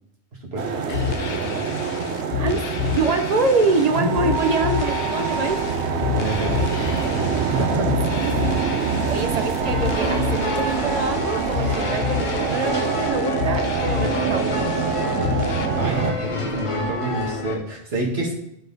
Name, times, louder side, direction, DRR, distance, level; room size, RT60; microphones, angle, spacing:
voice 1, 0.5-1.7 2.5-3.0 3.9-4.6 6.1-8.0 13.9-14.1 15.8-18.3, right 1 dB, 70° right, -1 dB, 2.0 m, -29 dB
sound 1, 0.6-16.1, right 5 dB, 90° right, 1.1 m, -25 dB
sound 2, 0.9-15.7, left 9 dB, 70° left, 0.9 m, -30 dB
voice 2, 2.9-5.7 8.2-14.5, right 3 dB, 45° right, 6 dB, 0.6 m, -25 dB
sound 3, 9.6-17.6, left 1 dB, 30° left, 0.9 m, -29 dB
11.5 x 4.1 x 4.0 m, 0.76 s
omnidirectional pair, 1.1 m